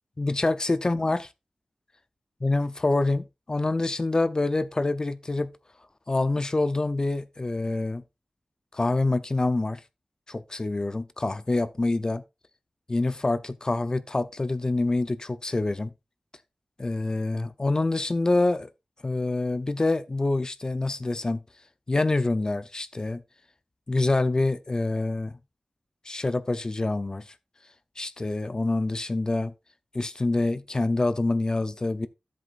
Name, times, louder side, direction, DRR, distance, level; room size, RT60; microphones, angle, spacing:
voice 1, 0.2-1.3 2.4-5.5 6.1-8.0 8.7-9.8 10.3-12.2 12.9-15.9 16.8-18.7 19.0-21.4 21.9-23.2 23.9-25.4 26.1-27.2 28.0-29.5 29.9-32.1, left 2 dB, 35° left, 0.6 m, -26 dB
11.0 x 7.6 x 2.5 m
wide cardioid pair, 65°, 2 cm